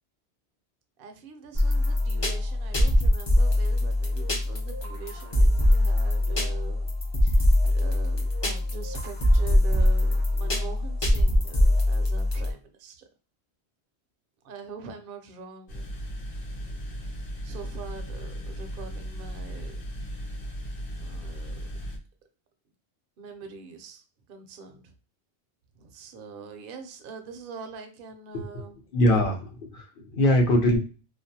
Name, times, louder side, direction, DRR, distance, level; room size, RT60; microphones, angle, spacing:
voice 1, 1.0-6.9 7.2-13.1 14.4-16.1 17.0-17.2 17.4-19.8 20.9-21.5 23.2-24.9 25.7-28.8, right 5 dB, 65° right, 6 dB, 0.7 m, -43 dB
sound 1, 1.5-12.5, left 1 dB, 35° left, 0.5 m, -23 dB
sound 2, 15.7-22.0, equal, 75° left, 0.9 m, -36 dB
voice 2, 28.9-30.8, left 1 dB, 55° left, 1 dB, 0.8 m, -23 dB
2.4 x 2.0 x 2.6 m, 0.34 s
omnidirectional pair, 1.1 m